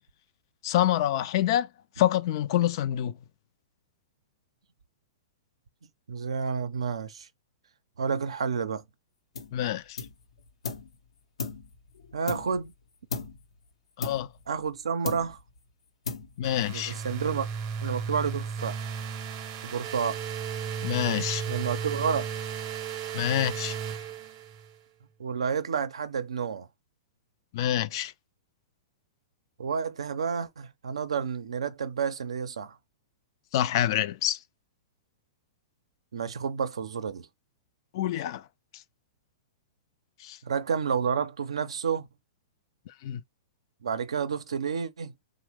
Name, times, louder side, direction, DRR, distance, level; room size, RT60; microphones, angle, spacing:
voice 1, 0.6-1.7 2.0-3.1 9.5-10.0 14.0-14.3 16.4-16.9 20.8-21.4 23.1-23.8 27.5-28.1 33.5-34.4 37.9-38.4 40.2-40.4 43.0-43.2, left 12 dB, 55° left, 0.3 m, -26 dB
voice 2, 6.1-7.3 8.0-8.8 12.1-12.7 14.5-15.4 16.7-17.5 17.8-18.8 19.6-20.2 21.5-22.3 25.2-26.7 29.6-32.8 36.1-37.3 40.4-42.1 43.8-45.1, right 6 dB, 85° right, 0.5 m, -30 dB
sound 1, 9.3-9.6 10.0-10.9 11.4-12.7 13.1-13.5 14.0-14.8 15.0-15.6 16.0-16.6, left 5 dB, 85° left, 0.7 m, -37 dB
sound 2, 16.4-24.8, right 7 dB, 40° right, 0.7 m, -34 dB
3.0 x 2.1 x 3.2 m
hypercardioid pair, 125°, 3 cm